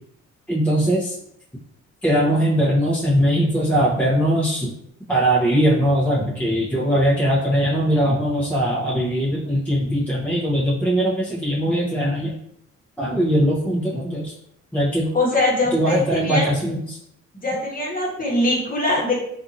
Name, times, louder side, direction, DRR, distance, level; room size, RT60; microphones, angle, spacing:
voice 1, 0.5-1.1 2.0-4.7 5.1-12.3 13.0-14.3 14.7-15.1 15.7-17.0, equal, 5° left, -7 dB, 0.7 m, -20 dB
voice 2, 15.1-16.5 17.3-19.2, left 2 dB, 30° left, -3 dB, 1.1 m, -22 dB
2.7 x 2.5 x 2.5 m, 0.74 s
cardioid pair, 90°, 30 cm